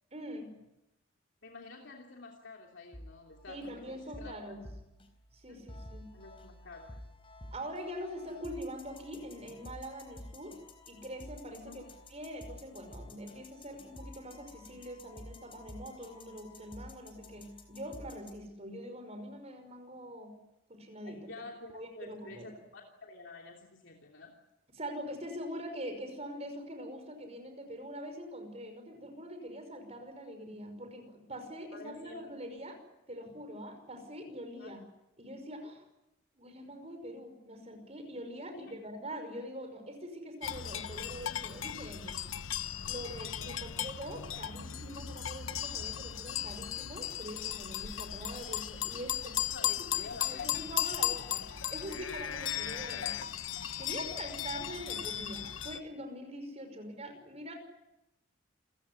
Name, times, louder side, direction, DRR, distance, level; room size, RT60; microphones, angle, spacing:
voice 1, 0.1-0.5 3.5-4.6 5.3-6.1 7.5-10.6 10.9-11.8 12.1-20.3 20.7-21.2 21.7-22.5 24.8-32.8 33.1-34.8 35.2-35.8 36.4-42.2 42.8-49.7 50.2-53.2 53.8-57.5, equal, 30° right, 7 dB, 5.7 m, -44 dB
voice 2, 1.4-4.4 5.5-5.6 6.1-6.9 11.5-11.8 21.0-24.3 31.7-32.6 34.6-34.7 38.5-38.7 43.6-43.8 49.5-50.8 56.6-56.7, left 3 dB, 65° left, 0 dB, 3.1 m, -49 dB
sound 1, 2.9-18.3, left 1 dB, 25° left, 4.0 m, -51 dB
sound 2, 40.4-55.8, left 10 dB, 80° left, 1.0 m, -36 dB
28.5 x 16.0 x 9.9 m, 0.89 s
head